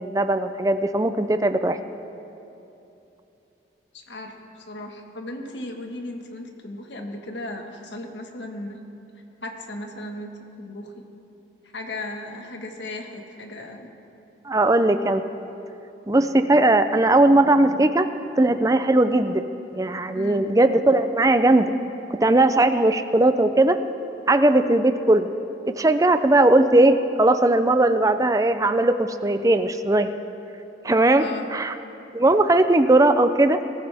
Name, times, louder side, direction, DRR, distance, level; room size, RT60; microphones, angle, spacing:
voice 1, 0.0-1.8 14.5-15.2 16.1-18.1 18.4-19.4 19.7-21.7 22.2-23.8 24.3-25.3 25.7-30.1 30.8-31.2 31.5-31.7 32.1-33.6, right 2 dB, 20° right, 9 dB, 0.5 m, -18 dB
voice 2, 3.9-8.8 9.4-11.0 11.7-13.9 20.1-20.5 31.2-31.5, left 1 dB, 75° left, 3 dB, 1.6 m, -36 dB
22.5 x 14.5 x 3.5 m, 2.9 s
head